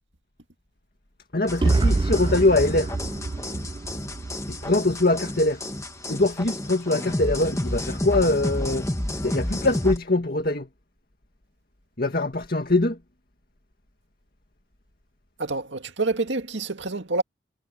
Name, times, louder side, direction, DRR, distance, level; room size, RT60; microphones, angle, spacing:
voice 1, 1.3-2.9 4.5-5.6 6.1-8.9 9.2-10.7 12.0-13.0, left 2 dB, 55° left, 2.1 m, -23 dB
sound 1, 1.5-10.0, left 1 dB, 15° left, 1.9 m, -31 dB
sound 2, 1.6-5.5, right 3 dB, 25° right, 0.3 m, -26 dB
voice 2, 15.4-17.2, right 3 dB, 90° right, 2.1 m, -27 dB
head